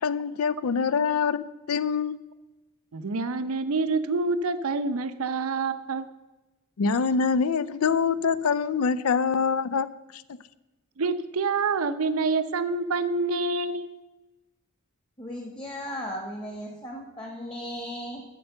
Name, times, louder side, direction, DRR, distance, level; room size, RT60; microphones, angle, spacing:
voice 1, 0.0-2.2 6.8-9.9 10.1-10.4, left 5 dB, 80° left, 0.5 m, -25 dB
voice 2, 2.9-6.1 11.0-14.0, right 3 dB, 75° right, 0.6 m, -27 dB
voice 3, 15.2-18.2, equal, 25° left, 1.2 m, -36 dB
8.4 x 6.6 x 6.7 m
head